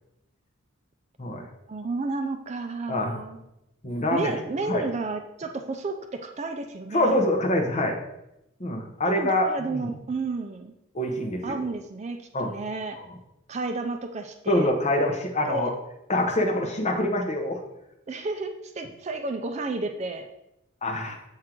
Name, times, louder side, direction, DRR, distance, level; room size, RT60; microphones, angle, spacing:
voice 1, 1.7-3.4 4.1-7.2 9.0-10.7 11.4-13.0 13.5-14.7 15.5-15.7 18.1-20.3, right 3 dB, 35° right, 6 dB, 0.4 m, -32 dB
voice 2, 2.9-3.2 3.8-4.3 4.7-4.8 6.9-8.0 8.6-9.9 10.9-11.6 12.3-12.5 12.9-13.0 14.5-15.7 16.1-17.6 20.8-21.2, left 1 dB, 35° left, 2 dB, 0.9 m, -25 dB
7.4 x 3.7 x 4.5 m, 0.87 s
head